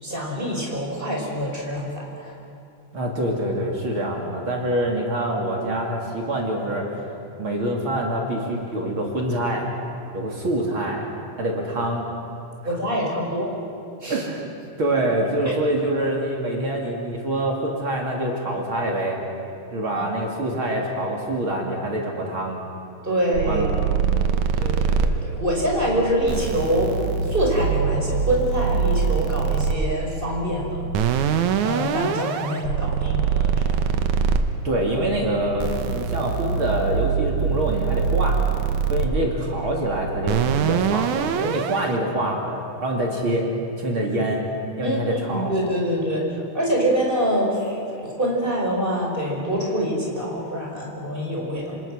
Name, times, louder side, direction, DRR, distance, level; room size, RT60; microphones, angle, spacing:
voice 1, 0.0-2.4 12.7-13.5 14.0-14.2 19.9-20.1 23.0-23.6 23.9-24.1 24.6-30.9 31.6-34.0 44.8-46.3 46.5-51.8, equal, 15° right, -2 dB, 5.2 m, -25 dB
voice 2, 2.9-6.9 7.4-9.6 10.1-11.0 11.4-12.1 14.1-14.5 14.8-19.2 19.7-22.6 23.4-23.7 34.6-38.4 38.9-43.5 43.8-44.4 44.8-45.5, right 1 dB, 45° right, 0 dB, 3.1 m, -25 dB
sound 1, 23.3-41.9, right 6 dB, 85° right, 2.5 m, -24 dB
27.0 x 26.5 x 6.3 m, 2.6 s
omnidirectional pair, 3.3 m